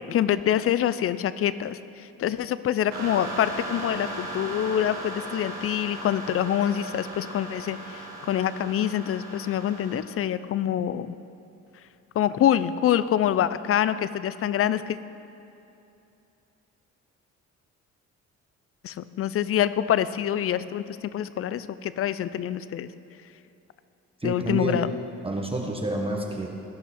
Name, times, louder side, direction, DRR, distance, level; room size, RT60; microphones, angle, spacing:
voice 1, 0.0-11.2 12.1-15.0 18.8-22.9 24.2-24.9, left 10 dB, 50° left, 15 dB, 0.4 m, -26 dB
sound 1, 2.9-10.0, right 2 dB, 65° right, 2.3 m, -37 dB
voice 2, 24.2-24.9 25.2-26.5, right 1 dB, 20° right, 0 dB, 1.0 m, -29 dB
16.0 x 5.8 x 4.3 m, 2.8 s
cardioid pair, 90°, 30 cm